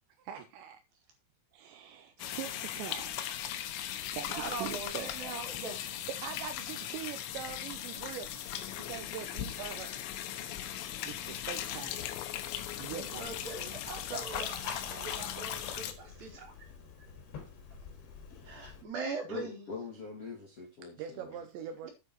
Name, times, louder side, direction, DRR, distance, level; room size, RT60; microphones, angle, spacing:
voice 1, 0.2-0.8 1.5-3.2 4.1-5.2 5.9-8.5 8.8-10.0 11.1-12.0 12.8-13.3 16.4-16.5 20.8-21.9, right 10 dB, 80° right, 3.0 m, -43 dB
sound 1, 2.2-15.9, left 11 dB, 90° left, 3.7 m, -38 dB
voice 2, 4.3-5.8 13.1-16.5 18.5-19.6 21.8-21.9, right 3 dB, 50° right, 5.1 m, -41 dB
Liquid, 13.2-18.8, left 6 dB, 65° left, 5.0 m, -46 dB
voice 3, 19.3-21.4, left 4 dB, 45° left, 2.1 m, -43 dB
9.9 x 8.4 x 4.6 m
omnidirectional pair, 5.6 m